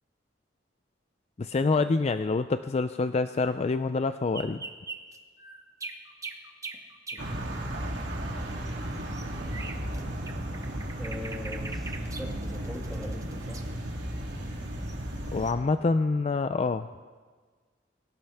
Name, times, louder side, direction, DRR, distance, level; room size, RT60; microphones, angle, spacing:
voice 1, 1.4-4.6 15.3-16.9, left 3 dB, 35° left, 10 dB, 0.4 m, -26 dB
sound 1, 4.3-7.3 8.7-10.0 10.3-13.6 14.9-15.0 15.4-15.6, right 3 dB, 20° right, 0.9 m, -41 dB
voice 2, 7.1-7.5 11.0-13.7, left 1 dB, ahead, -1 dB, 2.0 m, -42 dB
sound 2, 7.2-15.5, right 1 dB, 80° right, 2.8 m, -34 dB
22.0 x 17.5 x 3.5 m, 1.5 s
head